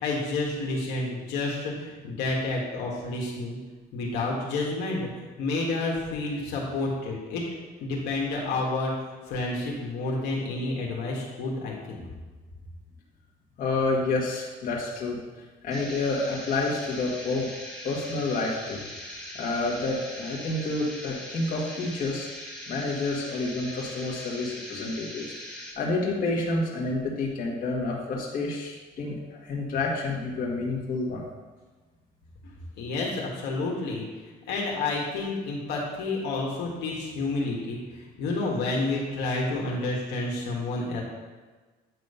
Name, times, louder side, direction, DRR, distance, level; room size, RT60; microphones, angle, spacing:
voice 1, 0.0-3.6 3.9-7.4 7.8-8.9 9.3-12.0 32.8-34.1 34.4-41.0, left 2 dB, 80° left, -2 dB, 1.7 m, -30 dB
voice 2, 13.6-15.2 15.6-17.5 17.8-18.8 19.3-22.3 22.7-25.3 25.8-31.2, left 3 dB, 55° left, -3 dB, 1.6 m, -29 dB
sound 1, 15.7-25.7, left 1 dB, 5° left, 1.5 m, -41 dB
9.2 x 3.2 x 5.5 m, 1.3 s
cardioid pair, 110°, 17 cm